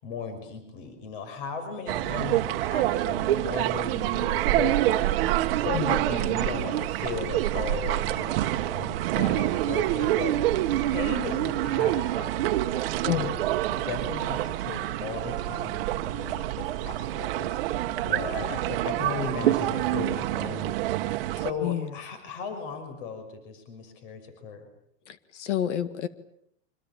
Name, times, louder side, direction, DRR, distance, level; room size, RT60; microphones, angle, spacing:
voice 1, 0.0-13.3 13.7-20.7 21.3-24.6, left 5 dB, 45° left, 8 dB, 6.0 m, -36 dB
sound 1, 1.9-21.5, right 14 dB, 50° right, 1.4 m, -27 dB
voice 2, 21.6-21.9 25.1-26.1, left 11 dB, 70° left, 12 dB, 2.0 m, -29 dB
27.5 x 26.0 x 7.4 m, 0.72 s
supercardioid pair, 170°, 36 cm